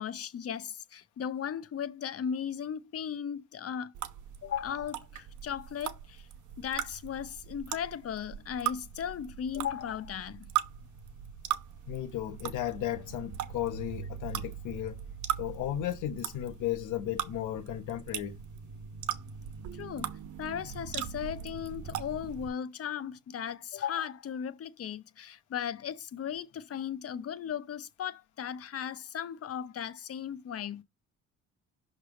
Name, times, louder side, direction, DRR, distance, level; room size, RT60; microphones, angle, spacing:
voice 1, 0.0-3.9 4.4-6.2 6.6-10.5 19.7-20.1 20.4-30.8, left 8 dB, 50° left, 0.8 m, -36 dB
sound 1, 3.9-22.5, right 11 dB, 75° right, 1.0 m, -39 dB
voice 2, 11.9-15.0 15.4-18.4, left 12 dB, 85° left, 1.2 m, -35 dB
6.1 x 3.3 x 5.9 m
cardioid pair, 90°, 30 cm